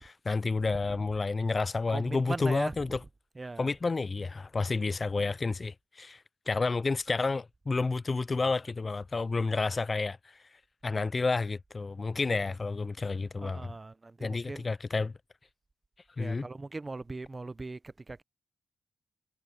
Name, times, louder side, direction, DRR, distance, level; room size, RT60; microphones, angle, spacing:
voice 1, 0.0-3.0 3.6-10.4 10.8-13.7 14.2-15.1 16.2-16.5, left 3 dB, 35° left, 0.3 m, -30 dB
voice 2, 1.9-2.8 3.4-3.7 13.4-14.6 16.2-18.2, right 3 dB, 25° right, 0.5 m, -39 dB
cardioid pair, 105°, 0 cm